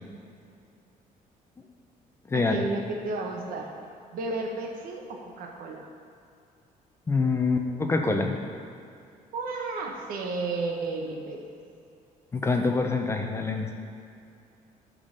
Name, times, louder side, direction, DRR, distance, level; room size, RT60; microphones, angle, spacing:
voice 1, 2.3-3.7 4.1-5.9 9.3-11.4, right 3 dB, 70° right, 1 dB, 1.3 m, -32 dB
voice 2, 7.1-8.3 12.3-13.7, left 3 dB, 15° left, 3 dB, 0.6 m, -25 dB
10.0 x 3.9 x 6.6 m, 2.5 s
cardioid pair, 150°, 15 cm